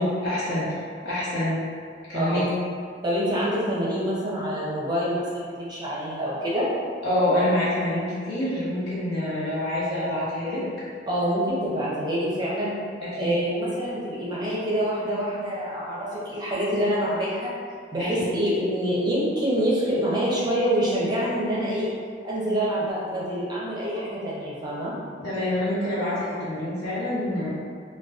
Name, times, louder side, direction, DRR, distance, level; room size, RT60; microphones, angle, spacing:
voice 1, 0.0-1.6 2.1-2.5 7.0-10.6 13.0-13.4 18.0-18.1 25.2-27.5, left 1 dB, 75° left, -10 dB, 0.9 m, -26 dB
voice 2, 3.0-6.6 11.1-12.7 13.1-17.5 17.9-21.9 22.2-24.9, equal, 25° right, -7 dB, 0.5 m, -26 dB
2.4 x 2.2 x 2.3 m, 2.1 s
head